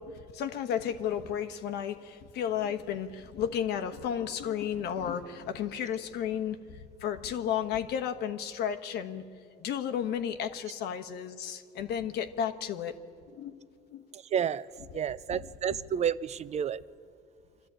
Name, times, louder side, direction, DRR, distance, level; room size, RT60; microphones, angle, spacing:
voice 1, 0.0-9.2 9.6-12.9 13.3-13.6 13.9-14.1 14.9-15.0 15.3-15.5, left 8 dB, 80° left, 8 dB, 1.2 m, -33 dB
voice 2, 14.1-14.6 14.9-16.8, right 8 dB, 40° right, 17 dB, 0.5 m, -30 dB
25.5 x 12.5 x 8.8 m, 2.4 s
cardioid pair, 110°, 17 cm